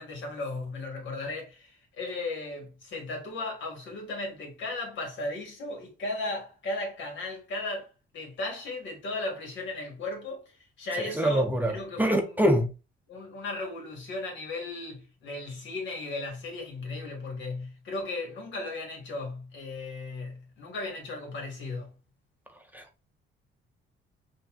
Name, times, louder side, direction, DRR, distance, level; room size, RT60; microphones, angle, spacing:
voice 1, 0.0-12.4 13.1-21.9, left 2 dB, 70° left, 1.8 m, -36 dB
voice 2, 11.0-12.6 22.7-23.0, equal, 10° right, 0.7 m, -25 dB
5.6 x 2.7 x 2.4 m
cardioid pair, 90°, 20 cm